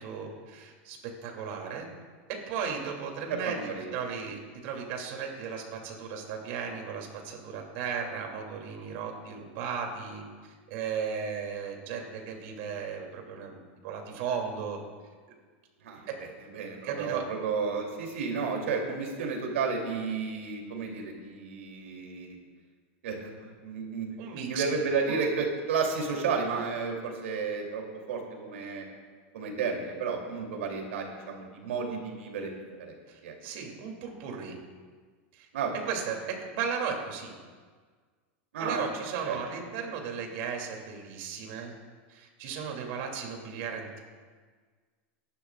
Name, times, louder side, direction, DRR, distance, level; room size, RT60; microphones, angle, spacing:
voice 1, 0.0-1.9 2.3-3.6 3.9-14.8 16.1-16.2 16.8-17.2 24.2-24.6 25.1-25.2 33.1-34.6 35.3-35.5 35.9-37.4 38.6-41.7 42.1-44.0, right 6 dB, 55° right, 2 dB, 2.7 m, -36 dB
voice 2, 3.3-3.9 15.8-16.1 16.5-22.4 23.0-23.3 23.6-24.1 24.5-28.8 29.3-32.5 32.8-32.9 33.2-33.3 35.5-35.7 38.5-39.4, right 5 dB, 85° right, 1 dB, 3.0 m, -32 dB
22.5 x 11.5 x 2.4 m, 1.5 s
supercardioid pair, 140°, 7 cm